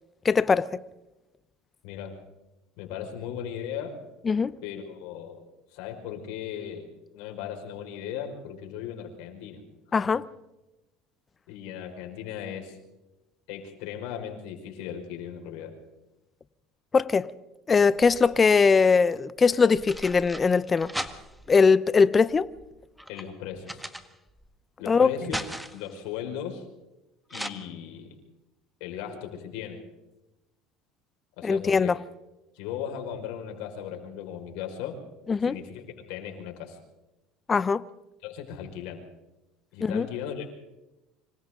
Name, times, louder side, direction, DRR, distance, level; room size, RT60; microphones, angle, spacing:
voice 1, 0.2-0.7 4.3-4.5 9.9-10.2 16.9-17.3 17.7-20.9 21.5-22.5 24.9-25.1 31.4-32.0 35.3-35.6 37.5-37.8 39.8-40.1, left 5 dB, 25° left, 0.8 m, -21 dB
voice 2, 1.8-2.2 2.8-4.0 4.6-5.4 5.7-6.9 7.1-9.6 11.5-12.8 13.5-15.7 23.1-23.8 24.8-25.4 25.7-26.6 27.3-28.1 28.8-29.8 31.4-31.9 32.5-35.0 35.4-36.8 38.2-39.1 39.7-40.6, left 9 dB, 75° left, 5.3 m, -37 dB
sound 1, 17.8-18.6 19.5-21.6 22.3-24.5 24.9-26.0 27.3-27.5, equal, ahead, 1.6 m, -38 dB
26.5 x 25.5 x 3.9 m
supercardioid pair, 95°, 0 cm